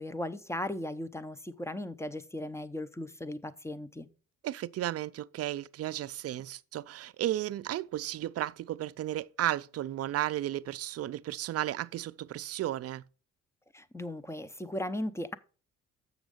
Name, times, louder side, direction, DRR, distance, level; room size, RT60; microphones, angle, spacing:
voice 1, 0.0-4.1 13.7-15.4, left 1 dB, 10° left, 0.6 m, -37 dB
voice 2, 4.4-13.0, right 13 dB, 55° right, 0.4 m, -34 dB
7.2 x 6.3 x 5.0 m
cardioid pair, 90°, 30 cm